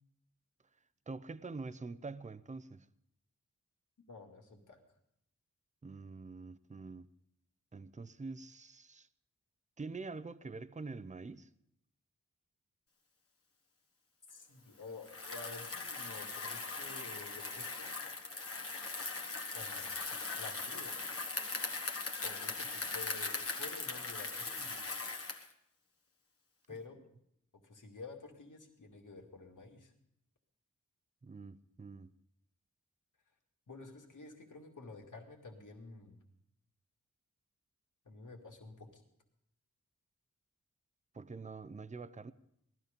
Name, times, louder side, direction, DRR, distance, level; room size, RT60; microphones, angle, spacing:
voice 1, 1.1-2.9 5.8-7.1 7.7-9.1 9.8-11.5 31.2-32.1 41.1-42.3, right 3 dB, 25° right, 0.6 m, -45 dB
voice 2, 4.1-4.8 14.3-17.9 19.5-20.9 22.2-24.8 26.7-27.0 27.5-29.9 33.7-36.2 38.0-39.0, left 3 dB, 75° left, 2.3 m, -51 dB
Bicycle, 15.0-25.5, left 3 dB, 45° left, 1.5 m, -40 dB
18.5 x 13.5 x 5.2 m
wide cardioid pair, 110°, 31 cm